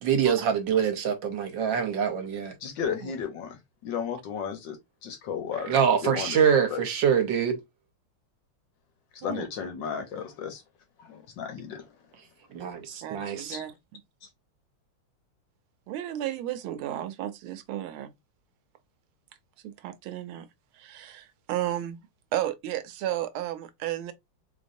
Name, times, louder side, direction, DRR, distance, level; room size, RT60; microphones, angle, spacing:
voice 1, 0.0-2.5 5.7-7.6 12.5-13.6, right 7 dB, 65° right, 1.5 m, -25 dB
voice 2, 2.6-5.8 6.0-6.4 6.7-6.8 9.2-10.6 11.0-11.9 13.5-13.6, left 7 dB, 65° left, 1.4 m, -34 dB
voice 3, 13.0-14.0 15.9-18.1 19.6-20.5 20.7-22.0 22.3-24.1, right 12 dB, 85° right, 1.5 m, -33 dB
3.9 x 3.4 x 2.5 m
omnidirectional pair, 2.3 m